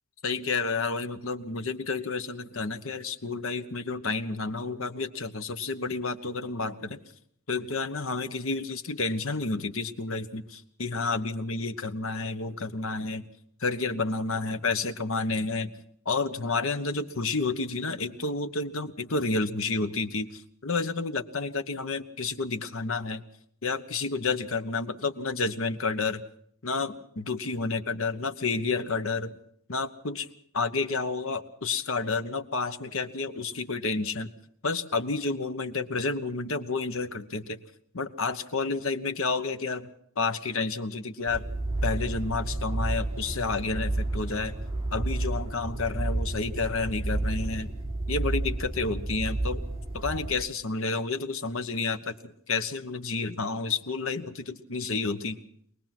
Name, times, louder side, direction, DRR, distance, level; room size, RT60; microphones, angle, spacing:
voice 1, 0.2-7.0 7.5-13.3 13.6-15.7 16.0-23.2 23.6-26.2 26.6-29.3 29.7-30.3 30.5-34.3 34.6-37.6 37.9-39.9 40.2-41.5 41.8-44.5 44.9-47.7 48.1-49.6 49.9-55.4, left 3 dB, 65° left, 9 dB, 1.2 m, -30 dB
sound 1, 41.3-50.3, right 2 dB, 25° right, 4.7 m, -31 dB
23.5 x 19.0 x 6.1 m, 0.68 s
head